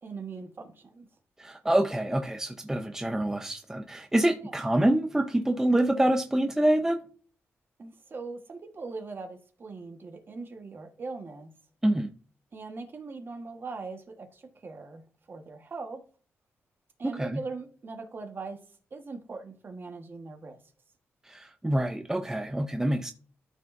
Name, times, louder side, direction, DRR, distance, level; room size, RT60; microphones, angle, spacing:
voice 1, 0.0-1.1 4.4-4.5 7.8-11.5 12.5-15.0 15.3-16.0 17.0-18.6 18.9-20.6, right 4 dB, 45° right, 1.5 m, -40 dB
voice 2, 1.4-7.0 11.8-12.1 17.2-17.4 21.3-23.1, right 1 dB, 10° right, 0.6 m, -26 dB
13.0 x 4.7 x 2.7 m
cardioid pair, 90°, 5 cm